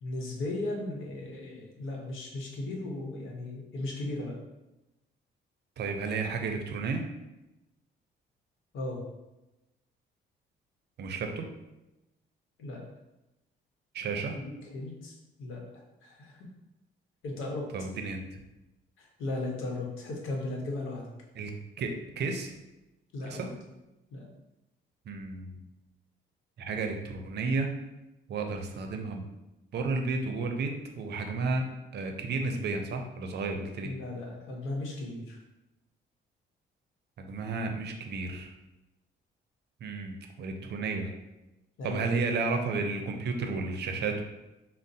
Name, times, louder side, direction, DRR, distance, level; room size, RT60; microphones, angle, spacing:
voice 1, 0.0-4.4 8.7-9.0 12.6-12.8 14.4-15.6 16.0-16.5 17.2-17.6 19.0-21.0 23.1-23.6 24.1-24.3 33.8-35.4 41.8-42.0, left 2 dB, 85° left, 0 dB, 0.8 m, -36 dB
voice 2, 5.8-7.0 11.0-11.4 13.9-14.3 17.7-18.2 21.4-22.5 23.3-23.5 25.1-25.6 26.6-27.7 28.3-29.3 29.7-31.6 31.9-33.9 37.2-38.5 39.8-41.1 41.8-44.2, right 4 dB, 60° right, 4 dB, 0.5 m, -32 dB
4.9 x 2.0 x 2.7 m, 0.97 s
cardioid pair, 90°, 20 cm